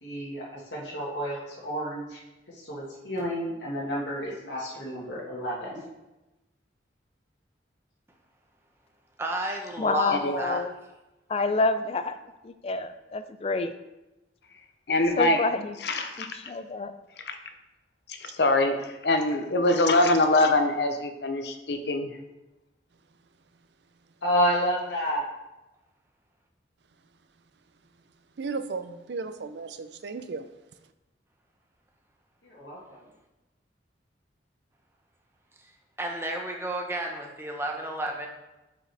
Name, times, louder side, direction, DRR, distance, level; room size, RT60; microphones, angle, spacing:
voice 1, 0.0-2.2 2.5-5.8 24.2-25.2 32.4-33.0, equal, 85° left, 1.7 m, -30 dB
voice 2, 9.2-10.7 36.0-38.3, right 1 dB, 15° right, 0.9 m, -32 dB
voice 3, 9.8-10.7 11.3-12.2 12.4-13.7 15.2-15.7 16.3-16.9, left 3 dB, 35° left, 0.4 m, -28 dB
voice 4, 14.9-15.5 15.8-16.3 17.2-17.4 18.1-22.1, left 2 dB, 65° left, 0.8 m, -24 dB
voice 5, 28.4-30.5, right 4 dB, 70° right, 0.5 m, -35 dB
8.7 x 5.0 x 3.4 m
head